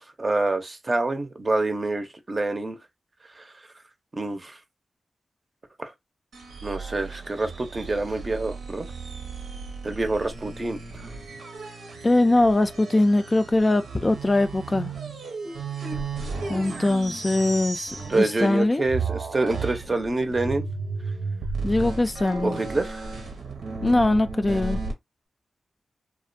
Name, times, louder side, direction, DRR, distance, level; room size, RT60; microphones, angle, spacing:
voice 1, 0.0-2.8 3.4-3.5 4.1-4.6 5.8-5.9 6.6-8.9 9.8-11.1 18.1-20.6 22.4-23.1, right 2 dB, 40° right, 0.6 m, -27 dB
sound 1, 6.3-18.6 18.9-24.9, right 4 dB, 90° right, 0.7 m, -34 dB
voice 2, 12.0-14.9 16.5-18.8 21.6-22.6 23.8-24.8, left 2 dB, 30° left, 0.3 m, -22 dB
2.4 x 2.1 x 2.5 m
cardioid pair, 50°, 0 cm